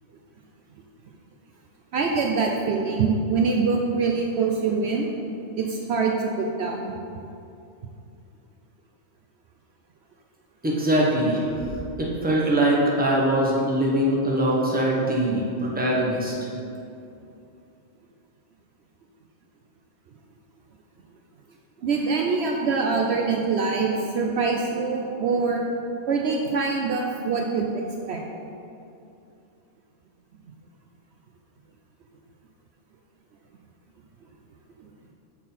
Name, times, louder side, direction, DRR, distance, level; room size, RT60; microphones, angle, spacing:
voice 1, 1.9-5.1 5.6-6.9 21.8-25.6 26.1-28.2, right 4 dB, 65° right, 1 dB, 0.8 m, -24 dB
voice 2, 10.6-11.4 12.0-16.3, right 1 dB, 10° right, -4 dB, 0.9 m, -22 dB
6.0 x 4.6 x 5.6 m, 2.6 s
omnidirectional pair, 1.3 m